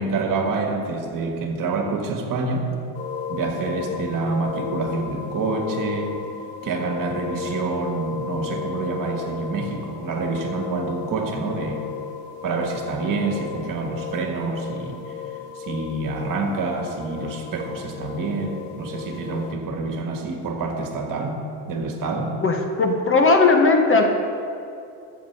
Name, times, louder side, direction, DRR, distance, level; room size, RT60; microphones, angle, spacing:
voice 1, 0.0-2.7 3.3-6.2 6.6-11.9 12.4-15.0 15.6-21.4 21.7-22.4, right 3 dB, 45° right, 3 dB, 1.7 m, -27 dB
sound 1, 2.9-19.5, left 7 dB, 70° left, 1.3 m, -34 dB
voice 2, 22.4-24.0, left 3 dB, 30° left, 4 dB, 1.0 m, -17 dB
13.5 x 7.3 x 4.7 m, 2.6 s
cardioid pair, 135°, 44 cm